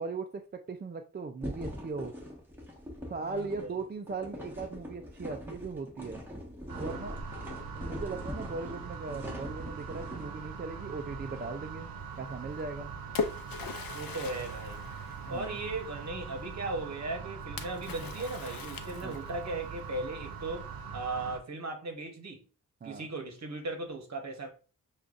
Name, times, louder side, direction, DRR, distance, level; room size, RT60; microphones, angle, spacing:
voice 1, 0.0-2.1 3.1-6.2 6.8-7.3 7.7-11.9 12.2-12.9 15.2-15.6 19.0-19.2 22.8-23.1, right 4 dB, 30° right, 0.4 m, -38 dB
sound 1, 1.4-10.3, equal, 5° right, 1.3 m, -42 dB
voice 2, 3.2-3.7 7.1-7.2 13.9-14.8 15.3-22.4 22.8-24.5, right 2 dB, 50° right, 1.1 m, -37 dB
sound 2, 6.7-21.4, right 5 dB, 85° right, 0.7 m, -42 dB
Splash splatter, 12.6-15.8 17.6-19.5, left 5 dB, 85° left, 0.6 m, -39 dB
6.5 x 2.4 x 2.4 m
wide cardioid pair, 105°, 34 cm